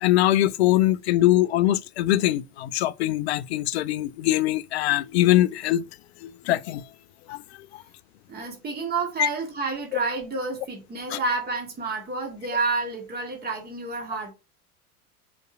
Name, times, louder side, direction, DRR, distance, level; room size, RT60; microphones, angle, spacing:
voice 1, 0.0-5.8 6.5-6.8 9.2-9.3 11.1-11.2, left 14 dB, 45° left, 0.5 m, -22 dB
voice 2, 8.3-14.3, right 3 dB, 20° right, 2.3 m, -29 dB
5.3 x 5.2 x 4.7 m
figure-of-eight pair, 85°, 45 cm